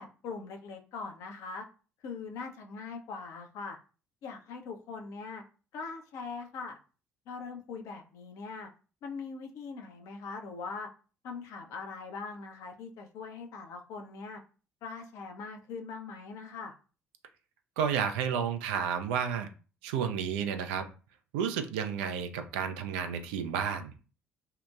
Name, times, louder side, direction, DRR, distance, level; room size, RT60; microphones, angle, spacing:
voice 1, 0.0-1.6 2.0-3.8 4.2-5.4 5.7-6.8 7.3-8.7 9.0-10.9 11.2-14.4 14.8-16.7, left 4 dB, 55° left, 0.5 m, -41 dB
voice 2, 17.8-19.5 19.8-20.9 21.3-23.9, right 7 dB, 70° right, 0.3 m, -31 dB
2.8 x 2.1 x 2.3 m
figure-of-eight pair, 50°, 6 cm